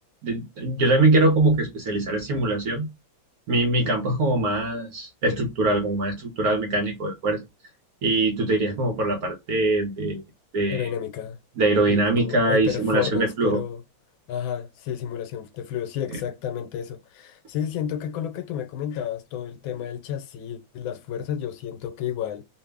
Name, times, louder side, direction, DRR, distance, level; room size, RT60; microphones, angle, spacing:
voice 1, 0.2-2.9 3.5-7.4 8.0-10.2 10.5-10.9 11.6-13.6 16.1-16.2, right 2 dB, 60° right, 1.0 m, -22 dB
voice 2, 10.7-11.4 11.9-13.8 14.3-22.4, left 9 dB, 85° left, 1.4 m, -31 dB
3.1 x 2.5 x 3.3 m
omnidirectional pair, 2.2 m